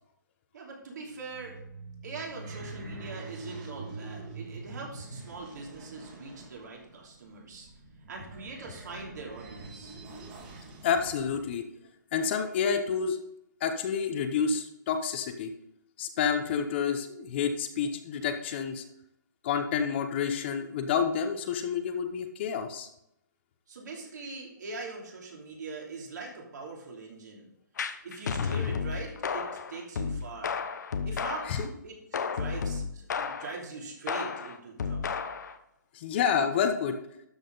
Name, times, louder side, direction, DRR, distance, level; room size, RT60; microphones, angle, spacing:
voice 1, 0.5-1.6 2.0-7.7 8.1-10.0 23.7-27.5 28.0-30.6 31.1-35.3, right 3 dB, 65° right, -2 dB, 3.1 m, -42 dB
sound 1, 1.1-11.6, right 3 dB, 30° right, 2.1 m, -45 dB
voice 2, 10.8-11.6 12.1-13.2 13.6-15.5 16.0-18.8 19.4-22.9 31.5-31.7 35.9-36.9, left 7 dB, 35° left, 7 dB, 0.9 m, -29 dB
sound 2, 27.8-31.7 32.1-33.6 34.1-35.6, left 6 dB, 65° left, 0.9 m, -33 dB
12.5 x 6.0 x 4.0 m, 0.79 s
hypercardioid pair, 155°, 10 cm